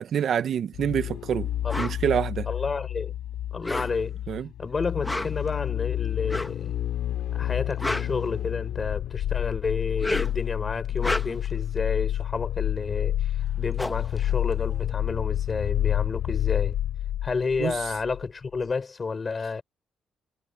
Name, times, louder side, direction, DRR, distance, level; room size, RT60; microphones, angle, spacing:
voice 1, 0.0-1.5 1.8-2.5 4.3-4.5 17.6-17.8, right 8 dB, 60° right, 0.9 m, -26 dB
sound 1, 0.7-18.3 18.5-18.6, left 12 dB, 80° left, 3.8 m, -29 dB
sound 2, 1.7-2.0 3.5-4.2 4.9-5.5 6.3-6.6 7.5-8.8 9.8-10.5 10.9-11.6 13.1-13.2 13.4-15.1, left 1 dB, 10° left, 1.3 m, -32 dB
voice 2, 2.5-3.1 3.5-4.2 4.6-6.8 7.3-13.2 13.6-16.8 17.2-19.6, left 4 dB, 35° left, 5.7 m, -30 dB
cardioid pair, 90°, 0 cm